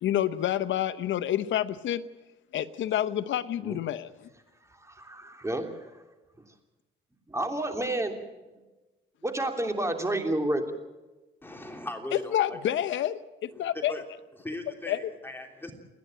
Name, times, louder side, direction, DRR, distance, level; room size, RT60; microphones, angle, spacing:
voice 1, 0.0-2.0 2.5-4.1 12.3-13.9 14.9-15.0, left 11 dB, 70° left, 12 dB, 0.8 m, -28 dB
voice 2, 4.7-5.7 7.3-8.2 9.2-10.6, right 1 dB, 15° right, 5 dB, 3.1 m, -30 dB
voice 3, 11.4-12.8 13.5-14.1 14.4-15.7, left 1 dB, 10° left, 3 dB, 3.1 m, -39 dB
29.0 x 10.5 x 9.0 m, 1.1 s
cardioid pair, 90°, 20 cm